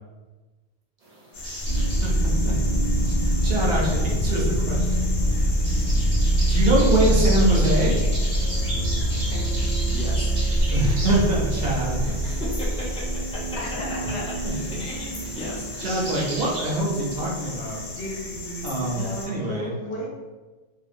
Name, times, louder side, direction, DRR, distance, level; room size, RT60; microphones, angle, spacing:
sound 1, 1.0-16.7, right 1 dB, 45° right, 0.6 m, -39 dB
sound 2, 1.3-19.3, left 1 dB, 45° left, 0.7 m, -35 dB
voice 1, 1.7-2.1 2.4-2.5 3.0-5.0 5.3-5.5 6.4-8.0 10.7-12.2 14.4-14.5 15.8-17.8 18.6-19.7, right 1 dB, 65° right, -3 dB, 0.9 m, -24 dB
sound 3, 1.7-18.4, right 1 dB, 85° right, 1.0 m, -24 dB
voice 2, 9.9-10.3 12.0-13.6 14.1-15.9, left 2 dB, 10° left, -6 dB, 0.3 m, -36 dB
voice 3, 13.6-13.9 14.1-14.2 18.0-20.1, left 1 dB, 75° left, -3 dB, 1.0 m, -34 dB
2.7 x 2.1 x 2.5 m, 1.2 s
omnidirectional pair, 1.1 m